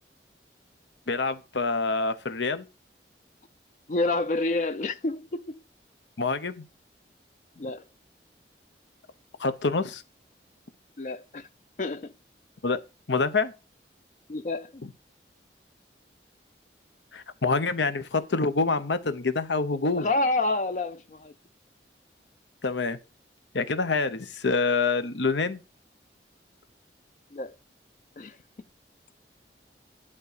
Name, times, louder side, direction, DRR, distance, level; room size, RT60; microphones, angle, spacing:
voice 1, 1.1-2.6 6.2-6.7 9.4-10.0 12.6-12.8 13.1-13.5 14.8-14.9 17.1-20.1 22.6-23.0 23.5-25.6, left 4 dB, 85° left, 0.9 m, -26 dB
voice 2, 3.9-5.6 7.6-7.8 11.0-11.5 11.8-12.1 14.3-14.8 19.9-21.3 27.3-27.6 28.2-28.4, left 2 dB, 45° left, 0.4 m, -28 dB
11.0 x 3.7 x 6.7 m
head